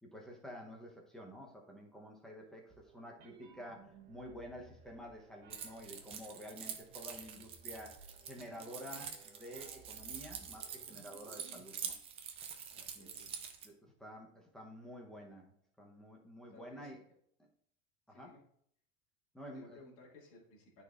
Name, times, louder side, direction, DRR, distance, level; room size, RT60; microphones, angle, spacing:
voice 1, 0.0-12.0 12.9-13.1 13.6-17.0 18.1-18.3 19.3-19.8, equal, ahead, -1 dB, 0.8 m, -50 dB
sound 1, 2.7-11.9, right 5 dB, 60° right, 1.0 m, -60 dB
Keys jangling, 5.5-13.7, right 7 dB, 20° right, 0.4 m, -46 dB
voice 2, 12.7-13.4 16.5-16.9 18.1-18.4 19.4-20.8, left 2 dB, 45° left, -3 dB, 2.0 m, -58 dB
12.0 x 4.2 x 2.4 m, 0.66 s
cardioid pair, 180°, 31 cm